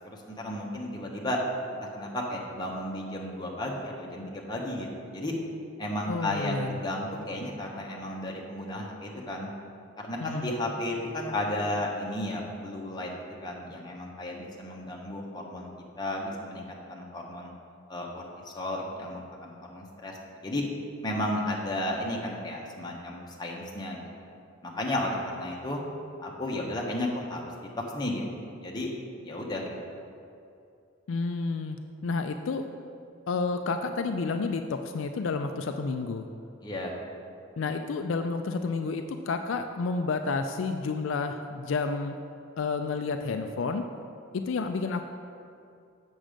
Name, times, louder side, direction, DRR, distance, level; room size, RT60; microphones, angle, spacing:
voice 1, 0.3-1.4 1.9-5.4 5.8-9.5 10.0-13.1 13.4-15.7 16.0-17.5 17.9-20.1 20.4-20.6 21.0-24.2 24.6-25.8 26.2-27.4 27.9-28.9 29.2-30.0 36.6-36.9, left 1 dB, 20° left, -2 dB, 1.1 m, -33 dB
voice 2, 6.1-6.8 10.2-10.5 31.1-31.8 32.0-32.6 33.3-36.3 37.6-42.1 42.6-43.8 44.5-45.0, left 4 dB, 70° left, 6 dB, 0.4 m, -30 dB
7.5 x 6.3 x 5.1 m, 2.5 s
head